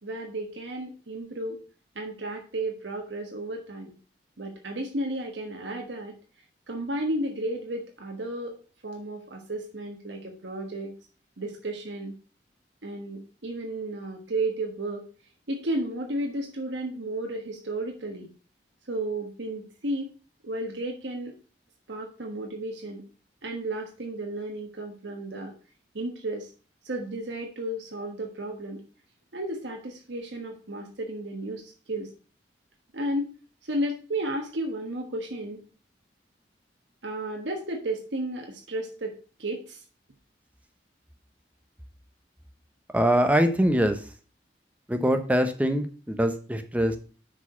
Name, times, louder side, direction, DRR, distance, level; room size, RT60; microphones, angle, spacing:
voice 1, 0.0-1.6 1.9-3.9 4.4-6.1 6.7-8.5 8.8-10.9 11.4-12.1 12.8-15.0 15.5-18.3 18.9-20.1 20.4-21.3 21.9-23.0 23.4-25.5 25.9-26.5 26.8-28.8 29.3-32.1 32.9-33.3 33.6-35.6 37.0-39.1 39.4-39.8, right 1 dB, 90° right, 2 dB, 1.3 m, -33 dB
voice 2, 42.9-44.0 44.9-47.0, equal, 10° right, 7 dB, 0.8 m, -23 dB
6.3 x 4.9 x 5.6 m, 0.37 s
head